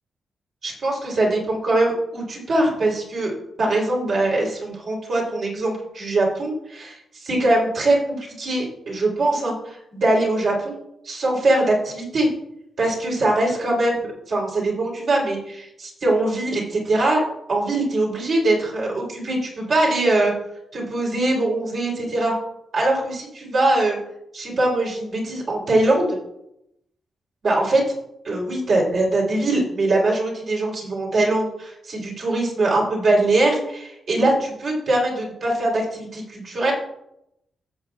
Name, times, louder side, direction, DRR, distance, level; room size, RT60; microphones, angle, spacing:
voice 1, 0.6-10.8 11.0-12.3 12.8-17.2 17.5-20.3 20.7-22.3 22.7-24.0 24.3-26.2 27.4-27.8 28.2-36.7, right 2 dB, 60° right, -3 dB, 3.1 m, -22 dB
15.0 x 7.2 x 2.3 m, 0.82 s
cardioid pair, 115°, 0 cm